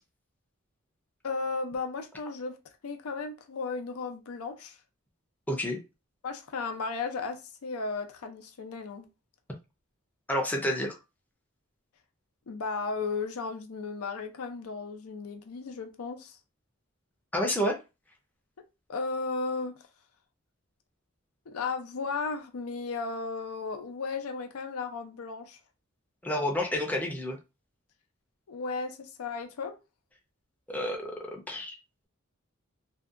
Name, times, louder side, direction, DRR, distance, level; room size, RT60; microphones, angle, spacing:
voice 1, 1.2-2.6 2.8-4.8 6.2-9.1 12.5-16.4 18.9-19.7 21.5-25.6 28.5-29.8, left 4 dB, 85° left, 0.5 m, -35 dB
voice 2, 5.5-5.8 10.3-11.0 17.3-17.8 26.2-27.4 30.7-31.8, equal, 10° left, 0.5 m, -29 dB
2.6 x 2.2 x 2.4 m
head